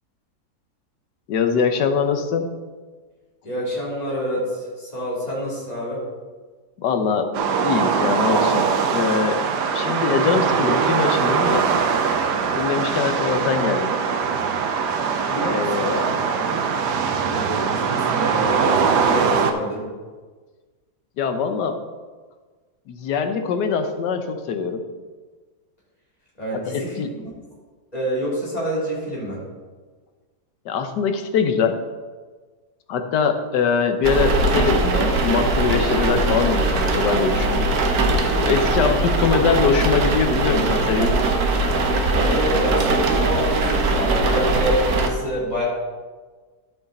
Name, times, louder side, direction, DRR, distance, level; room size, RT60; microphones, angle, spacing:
voice 1, 1.3-2.5 6.8-8.7 8.9-9.4 9.7-11.7 12.5-14.0 15.5-16.1 21.2-21.8 22.9-24.8 26.7-27.1 30.6-31.8 32.9-37.7 38.4-41.3, left 5 dB, 90° left, 7 dB, 1.5 m, -22 dB
voice 2, 3.4-6.0 15.3-19.9 26.4-27.2 27.9-29.4 38.8-38.9 42.1-45.6, equal, 25° left, -6 dB, 3.2 m, -27 dB
sound 1, 7.3-19.5, right 6 dB, 85° right, 1.4 m, -21 dB
sound 2, 34.0-45.1, right 2 dB, 65° right, 1.4 m, -20 dB
11.5 x 6.4 x 4.1 m, 1.4 s
omnidirectional pair, 1.8 m